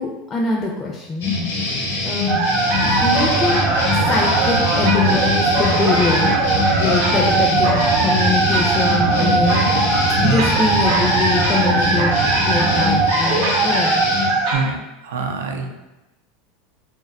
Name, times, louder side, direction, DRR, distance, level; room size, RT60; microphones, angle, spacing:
voice 1, 0.0-1.3 2.0-2.4 2.8-3.6 3.9-6.4 6.8-7.7 8.0-9.7 10.2-12.1 12.4-14.1, left 4 dB, 30° left, -1 dB, 0.3 m, -23 dB
sound 1, 1.2-14.3, left 3 dB, 85° left, 0.6 m, -24 dB
sound 2, 2.3-14.6, right 3 dB, 60° right, 0.7 m, -20 dB
sound 3, 2.7-13.1, right 2 dB, 25° right, 0.7 m, -26 dB
voice 2, 15.0-15.7, right 4 dB, 80° right, 4 dB, 0.3 m, -23 dB
2.7 x 2.1 x 2.4 m, 1.0 s
hypercardioid pair, 90°, 0 cm